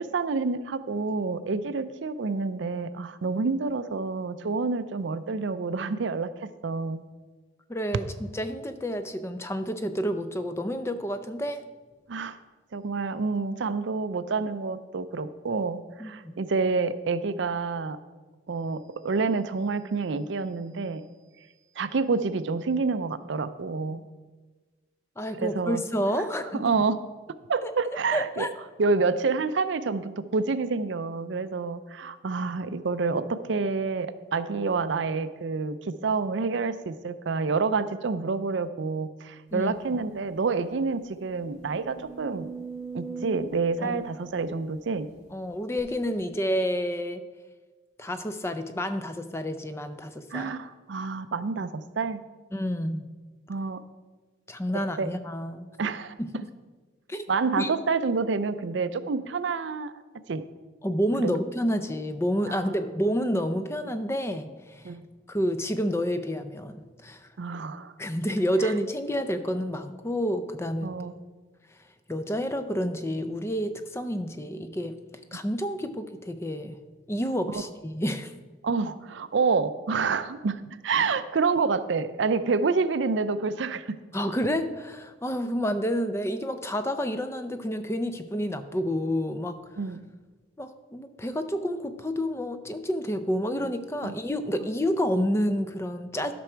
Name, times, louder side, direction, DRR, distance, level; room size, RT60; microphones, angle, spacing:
voice 1, 0.0-7.0 12.1-12.4 12.7-18.0 18.5-21.0 21.8-24.0 25.4-25.8 26.2-26.3 26.5-27.0 27.5-28.5 28.8-42.5 42.9-45.1 50.3-52.2 53.5-53.8 54.7-55.1 55.8-56.1 57.3-59.9 60.3-60.4 61.2-61.3 62.5-62.7 64.8-65.0 67.4-67.9 68.6-68.7 70.8-71.1 77.5-77.6 78.6-84.0 89.8-90.0 94.0-94.1, right 4 dB, 75° right, 12 dB, 0.5 m, -28 dB
voice 2, 7.7-8.0 8.3-11.6 16.0-16.4 25.2-26.7 27.6-27.7 28.1-28.5 39.5-39.7 43.8-44.0 45.3-47.2 48.0-50.5 52.5-53.0 54.5-55.7 56.2-56.3 57.1-57.3 57.6-57.7 60.8-64.9 65.3-67.3 68.0-71.0 72.1-75.0 75.3-76.8 77.1-78.3 84.1-89.6 90.6-96.3, equal, 15° left, 9 dB, 0.5 m, -29 dB
sound 1, 39.8-39.9 40.2-40.3 40.9-45.1 45.8-45.9, right 5 dB, 40° left, 3.4 m, -42 dB
12.0 x 6.1 x 4.5 m, 1.3 s
head